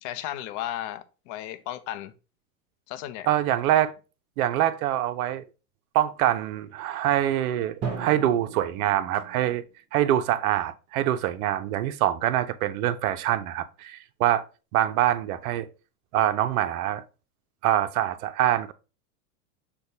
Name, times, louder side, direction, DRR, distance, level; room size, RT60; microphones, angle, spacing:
voice 1, 0.0-2.1 2.9-3.3, left 13 dB, 45° left, 0.5 m, -34 dB
voice 2, 3.3-3.9 4.4-5.4 5.9-9.6 9.9-14.4 14.7-15.7 16.1-17.0 17.6-18.7, right 12 dB, 70° right, 0.5 m, -24 dB
Drum, 7.8-9.7, right 6 dB, 35° right, 0.9 m, -36 dB
6.4 x 2.2 x 2.7 m
hypercardioid pair, 100°, 45 cm